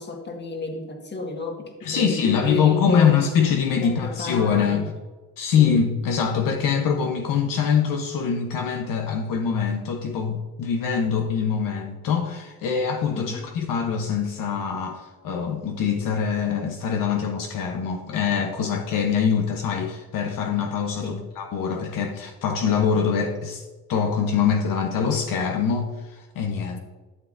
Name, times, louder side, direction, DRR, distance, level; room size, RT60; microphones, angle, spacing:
voice 1, 0.0-3.2 3.8-4.9 5.6-5.8 13.1-13.5 21.0-21.3, left 2 dB, 30° left, 3 dB, 1.7 m, -32 dB
voice 2, 1.8-4.9 5.4-26.8, left 7 dB, 65° left, 4 dB, 1.0 m, -24 dB
12.5 x 7.1 x 2.6 m, 1.2 s
cardioid pair, 100°, 36 cm